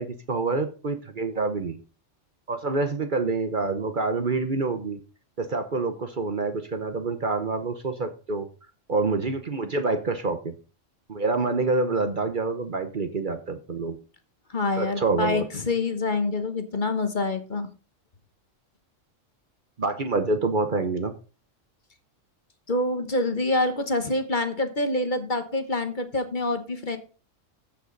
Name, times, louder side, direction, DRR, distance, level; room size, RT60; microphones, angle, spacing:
voice 1, 0.0-1.8 2.5-5.0 5.4-8.5 8.9-10.5 11.1-14.0 14.8-15.5 19.8-21.1, right 3 dB, 45° right, 8 dB, 1.0 m, -27 dB
voice 2, 14.5-17.7 22.7-27.0, left 2 dB, 40° left, 8 dB, 1.3 m, -26 dB
14.5 x 5.9 x 3.9 m, 0.35 s
omnidirectional pair, 1.3 m